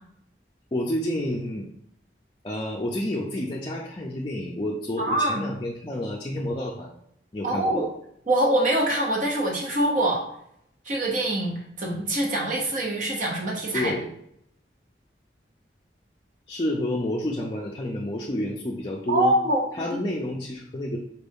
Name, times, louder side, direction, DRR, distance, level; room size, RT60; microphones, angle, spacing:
voice 1, 0.7-1.7 2.4-6.9 7.3-7.9 13.7-14.1 16.5-19.4 19.7-21.0, left 1 dB, 30° left, -2 dB, 0.4 m, -29 dB
voice 2, 5.0-5.5 7.4-7.8 8.3-10.2 10.8-13.9 19.1-20.0, right 1 dB, 45° right, -1 dB, 1.0 m, -24 dB
4.3 x 2.6 x 3.5 m, 0.72 s
head